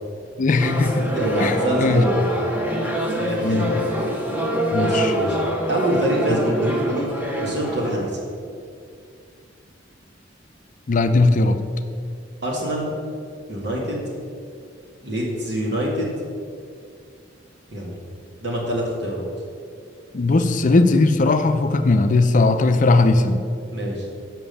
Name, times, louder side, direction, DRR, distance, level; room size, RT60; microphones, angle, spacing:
voice 1, 0.4-1.1 1.4-2.1 3.4-3.7 4.7-5.1 10.9-11.6 20.1-23.4, left 3 dB, 45° left, 8 dB, 0.5 m, -18 dB
sound 1, 0.6-8.0, equal, 10° right, 1.2 m, -25 dB
voice 2, 1.1-2.3 3.2-3.7 4.7-5.4 5.7-8.1 12.4-12.9 13.5-14.1 15.0-16.2 17.7-17.9 18.4-19.3 23.7-24.0, right 1 dB, 65° right, -3 dB, 2.4 m, -25 dB
7.4 x 5.9 x 6.9 m, 2.3 s
head